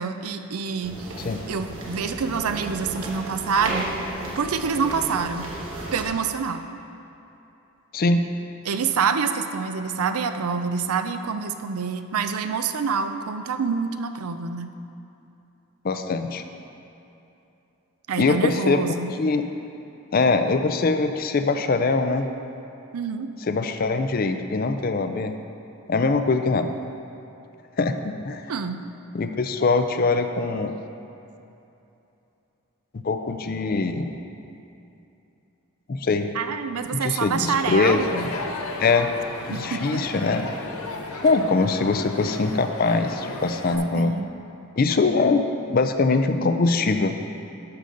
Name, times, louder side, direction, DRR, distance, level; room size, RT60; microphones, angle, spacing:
voice 1, 0.0-1.1 1.5-3.9 4.4-5.5 5.9-6.6 8.6-14.7 18.1-19.1 22.9-23.3 28.5-28.8 36.3-38.1 39.5-40.0 43.9-44.3, right 5 dB, 90° right, 8 dB, 0.5 m, -26 dB
sound 1, 0.8-6.0, right 2 dB, 65° right, 1.4 m, -34 dB
voice 2, 7.9-8.2 15.8-16.4 18.2-19.5 20.1-22.3 23.5-25.3 25.9-26.7 27.8-28.4 29.1-30.7 32.9-34.1 35.9-36.3 36.9-38.3 38.8-39.1 39.5-40.5 41.2-44.1 44.8-45.4 45.7-47.2, left 3 dB, 40° left, 8 dB, 0.4 m, -22 dB
Crowd, 37.5-43.8, left 3 dB, 80° left, 0.8 m, -34 dB
11.5 x 6.9 x 3.9 m, 2.8 s
head